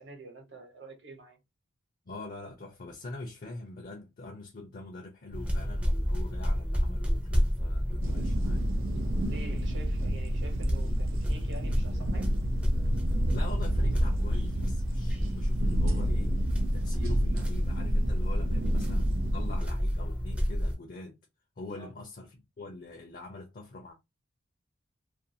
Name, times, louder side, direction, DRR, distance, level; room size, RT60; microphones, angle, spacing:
voice 1, 0.0-1.4 4.6-4.7 9.3-12.3 18.5-18.7 21.7-21.9, right 2 dB, 60° right, 0.9 m, -47 dB
voice 2, 2.1-8.6 13.3-16.4 16.7-21.2 21.6-23.9, left 2 dB, 45° left, 0.5 m, -44 dB
sound 1, 5.3-20.8, equal, 5° right, 0.4 m, -30 dB
sound 2, 8.0-19.6, right 1 dB, 80° right, 0.5 m, -31 dB
2.5 x 2.3 x 2.6 m
head